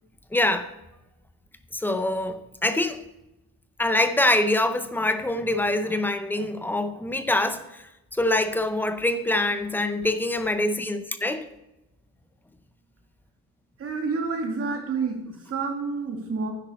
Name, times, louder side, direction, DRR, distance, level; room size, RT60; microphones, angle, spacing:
voice 1, 0.3-0.7 1.7-3.0 3.8-11.5, left 1 dB, 5° left, 0.6 m, -25 dB
voice 2, 13.8-16.5, right 4 dB, 35° right, 2.3 m, -29 dB
12.0 x 10.0 x 4.3 m
cardioid pair, 150°, 38 cm